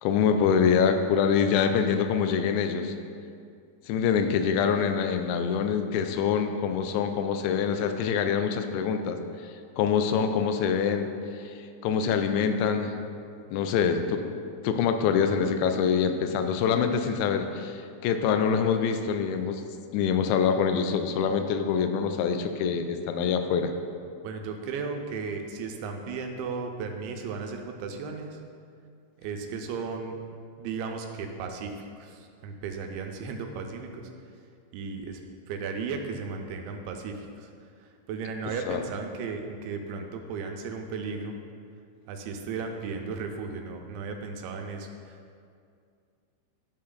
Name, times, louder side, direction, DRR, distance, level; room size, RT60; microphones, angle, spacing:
voice 1, 0.0-2.9 3.9-9.2 9.8-11.1 11.5-11.6 11.8-12.9 13.5-14.2 14.6-19.6 19.9-23.7 38.7-38.8, left 7 dB, 85° left, 7 dB, 2.9 m, -25 dB
voice 2, 24.2-28.4 29.2-30.2 30.6-34.1 34.7-35.2 35.5-37.5 37.8-41.4 42.1-45.2, right 4 dB, 85° right, 4 dB, 3.0 m, -35 dB
12.0 x 4.3 x 3.8 m, 2.3 s
omnidirectional pair, 5.3 m